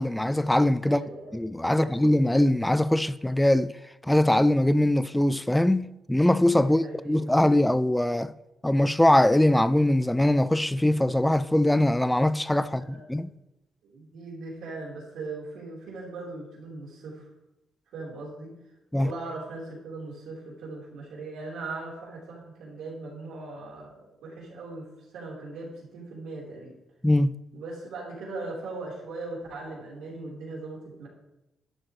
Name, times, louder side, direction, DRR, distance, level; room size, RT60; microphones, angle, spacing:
voice 1, 0.0-1.0 1.3-3.7 4.0-8.3 8.6-13.3 18.9-19.1 27.0-27.3, left 1 dB, 5° left, 0.4 m, -22 dB
voice 2, 0.8-1.4 1.6-2.0 6.6-7.2 12.6-13.3 13.8-17.3 17.9-18.5 18.9-26.7 27.5-31.1, right 3 dB, 90° right, 4.2 m, -39 dB
12.5 x 10.5 x 3.3 m
cardioid pair, 85°, 0 cm